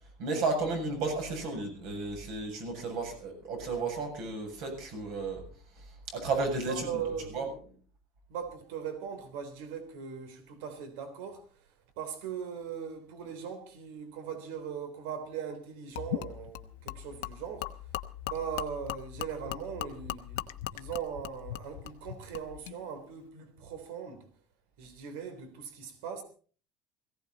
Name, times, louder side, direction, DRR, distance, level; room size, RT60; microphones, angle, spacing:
voice 1, 0.2-5.4 6.1-7.0 7.3-7.5, right 3 dB, 55° right, 7.4 m, -33 dB
voice 2, 6.7-7.4 8.3-11.7 12.0-17.8 18.2-24.3 24.8-26.2, right 7 dB, 75° right, 3.5 m, -39 dB
Gurgling / Liquid, 16.0-22.8, left 15 dB, 85° left, 1.1 m, -39 dB
18.5 x 16.5 x 4.2 m
cardioid pair, 175°, 0 cm